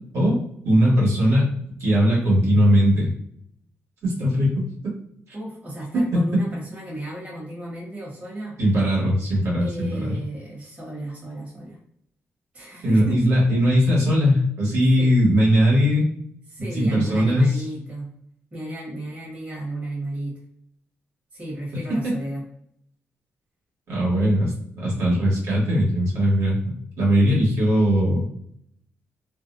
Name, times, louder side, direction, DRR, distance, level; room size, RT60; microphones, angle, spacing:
voice 1, 0.6-1.5 1.8-3.1 4.0-4.9 5.9-6.0 8.6-10.2 12.8-16.1 16.7-17.6 22.0-22.1 23.9-26.6 27.0-28.2, equal, 65° right, -5 dB, 1.2 m, -19 dB
voice 2, 5.3-8.6 9.6-11.8 12.5-13.2 15.0-15.1 16.5-18.1 18.5-20.4 21.3-22.4, right 1 dB, 25° right, -5 dB, 1.0 m, -33 dB
2.5 x 2.1 x 2.5 m, 0.67 s
cardioid pair, 115°, 5 cm